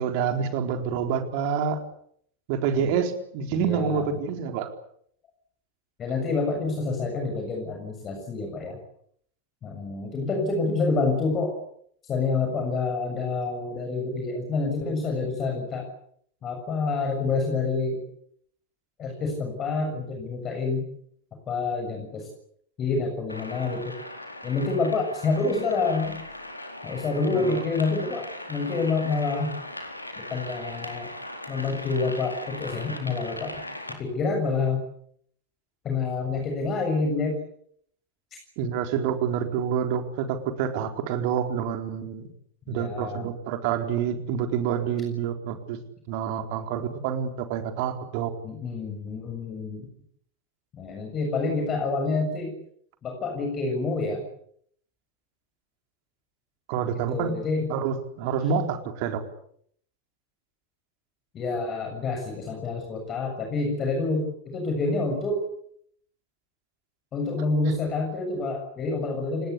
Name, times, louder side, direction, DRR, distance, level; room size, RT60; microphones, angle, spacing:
voice 1, 0.0-1.8 2.5-4.7 27.3-27.6 38.6-42.2 42.7-45.8 46.1-48.3 56.7-57.3 57.7-59.2, right 7 dB, 45° right, 6 dB, 4.3 m, -27 dB
voice 2, 3.5-4.2 6.0-8.8 9.6-11.5 12.0-15.9 16.4-18.0 19.0-20.9 21.5-22.3 22.8-24.0 24.4-26.2 26.8-29.6 30.2-31.1 31.5-33.6 33.9-34.8 35.8-37.4 42.7-43.3 48.4-49.9 50.7-52.5 53.0-54.2 57.1-57.7 61.3-65.5 67.1-69.5, left 3 dB, 30° left, 3 dB, 7.0 m, -28 dB
sound 1, 23.3-33.9, left 1 dB, 85° left, 4.3 m, -39 dB
29.5 x 19.5 x 8.4 m, 0.68 s
figure-of-eight pair, 90°, 0 cm